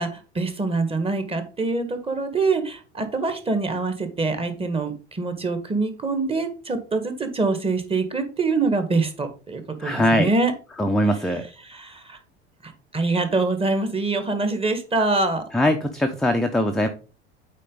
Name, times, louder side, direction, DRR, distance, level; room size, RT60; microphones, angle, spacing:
voice 1, 0.0-10.5 11.7-12.2 12.6-15.4, right 3 dB, 15° right, 8 dB, 1.5 m, -25 dB
voice 2, 9.8-10.3 10.8-11.5 15.5-16.9, equal, ahead, 3 dB, 0.7 m, -21 dB
8.4 x 4.4 x 3.9 m, 0.35 s
figure-of-eight pair, 75°, 33 cm